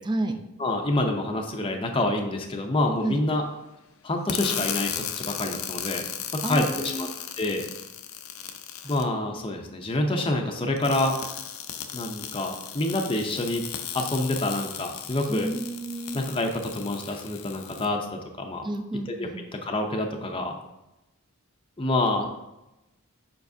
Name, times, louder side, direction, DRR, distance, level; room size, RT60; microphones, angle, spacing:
voice 1, 0.0-0.4 3.0-3.2 6.4-7.1 8.8-9.0 15.3-16.2 18.6-19.4, right 1 dB, 20° right, 6 dB, 0.5 m, -31 dB
voice 2, 0.6-3.4 4.0-6.0 6.3-7.1 7.4-7.6 8.9-11.2 11.9-13.6 13.9-15.5 16.1-18.7 19.1-19.3 19.6-20.5 21.8-22.2, left 2 dB, 25° left, 2 dB, 0.6 m, -27 dB
sound 1, 4.3-9.0 10.8-17.9, left 9 dB, 75° left, 0.5 m, -36 dB
7.1 x 5.3 x 2.7 m, 0.95 s
head